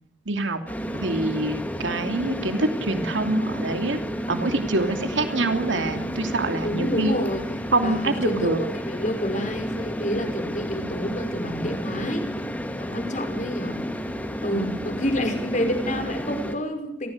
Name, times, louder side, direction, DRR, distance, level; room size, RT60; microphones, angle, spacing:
voice 1, 0.3-0.6 1.0-4.0 4.3-7.2 7.7-8.6 14.5-14.9, right 2 dB, 85° right, 7 dB, 2.9 m, -25 dB
sound 1, 0.7-16.6, equal, 10° left, 2.4 m, -31 dB
voice 2, 6.6-7.4 7.8-12.3 12.8-13.8 14.4-17.1, equal, 40° left, 7 dB, 5.7 m, -29 dB
28.5 x 20.0 x 6.7 m, 0.72 s
head